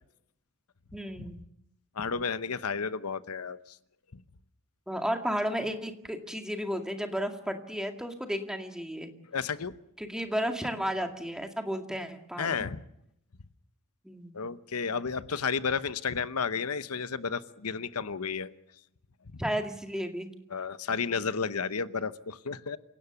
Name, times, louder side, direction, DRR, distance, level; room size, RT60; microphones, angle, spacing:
voice 1, 0.9-1.4 4.9-9.1 10.0-12.7 14.0-14.4 19.4-20.3, equal, 5° right, 4 dB, 2.2 m, -33 dB
voice 2, 1.9-3.8 4.1-4.2 9.3-9.7 12.4-12.8 14.3-18.5 19.3-19.4 20.5-22.8, left 5 dB, 85° left, 13 dB, 0.9 m, -32 dB
28.0 x 17.5 x 7.1 m, 0.76 s
head